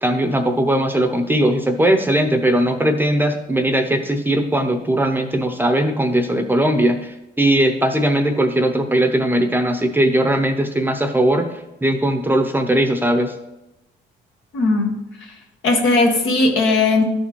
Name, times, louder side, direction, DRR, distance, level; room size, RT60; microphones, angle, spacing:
voice 1, 0.0-11.5 11.8-13.3, right 1 dB, 10° right, 5 dB, 0.7 m, -19 dB
voice 2, 14.5-14.9 15.6-17.0, left 3 dB, 75° left, 1 dB, 1.4 m, -17 dB
11.5 x 4.2 x 3.1 m, 0.92 s
cardioid pair, 90°, 20 cm